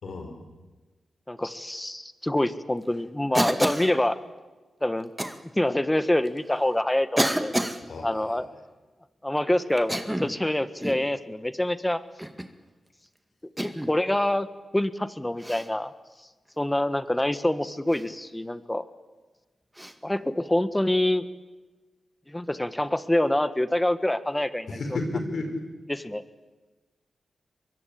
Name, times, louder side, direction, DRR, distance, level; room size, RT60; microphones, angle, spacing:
voice 1, 0.0-0.3 7.8-8.4 24.7-25.5, left 2 dB, 70° left, 5 dB, 5.3 m, -32 dB
voice 2, 1.3-4.2 4.8-5.1 5.4-7.5 8.0-8.5 9.2-12.0 13.6-14.5 14.7-15.9 16.6-18.8 20.0-21.2 22.3-24.8 25.9-26.2, left 1 dB, 15° left, 12 dB, 1.6 m, -26 dB
Cough, 3.3-3.9 5.2-5.4 6.3-6.4 7.2-7.8 9.8-10.4 10.8-11.1 12.2-12.5 13.6-13.9 15.4-15.7 17.9-18.1 19.8-19.9, right 1 dB, 10° right, 2.0 m, -28 dB
23.0 x 21.5 x 8.6 m, 1.3 s
supercardioid pair, 45°, 0 cm